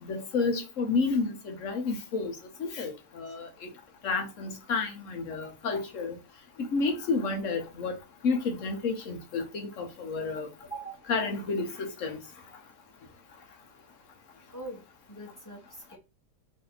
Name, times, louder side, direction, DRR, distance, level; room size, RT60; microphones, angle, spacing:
voice 1, 0.0-2.3 2.6-3.7 4.0-6.2 6.6-7.9 8.2-10.5 11.1-12.2, left 4 dB, 60° left, 1.0 m, -30 dB
voice 2, 10.7-11.1 14.5-14.8 15.1-16.0, right 2 dB, 15° left, 0.6 m, -42 dB
3.2 x 2.6 x 3.9 m
omnidirectional pair, 1.8 m